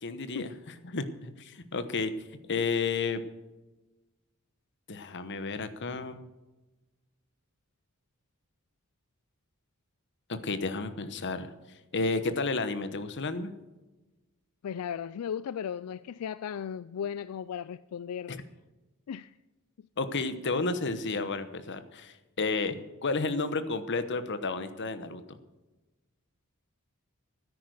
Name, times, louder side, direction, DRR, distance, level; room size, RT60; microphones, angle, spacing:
voice 1, 0.0-2.1 2.5-3.2 4.9-6.2 10.3-11.5 11.9-13.5 20.0-25.4, left 3 dB, 55° left, 11 dB, 1.1 m, -32 dB
voice 2, 14.6-18.4 19.1-19.3, left 8 dB, 80° left, 16 dB, 0.4 m, -36 dB
13.5 x 9.9 x 6.4 m, 1.1 s
head